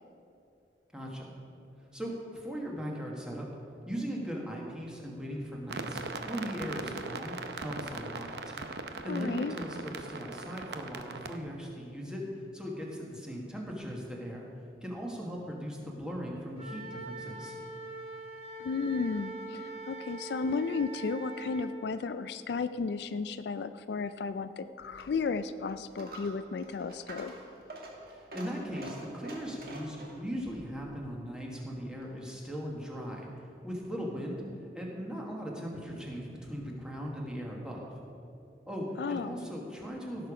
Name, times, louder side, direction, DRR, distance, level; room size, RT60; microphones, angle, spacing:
voice 1, 0.9-1.3 1.9-3.5 3.9-6.0 6.2-8.5 9.0-12.3 12.5-14.5 14.8-17.5 28.1-33.3 33.6-34.4 34.7-38.0 38.7-40.3, equal, 5° right, -2 dB, 1.5 m, -38 dB
sound 1, 5.7-11.4, right 3 dB, 70° right, 0.7 m, -40 dB
voice 2, 9.1-9.6 18.6-27.3 39.0-39.4, left 4 dB, 70° left, 12 dB, 0.3 m, -34 dB
Wind instrument woodwind instrument, 16.6-21.7, right 2 dB, 35° right, 2.5 m, -43 dB
Coin (dropping), 24.8-32.3, right 1 dB, 55° right, 1.8 m, -48 dB
17.0 x 6.7 x 5.0 m, 2.7 s
head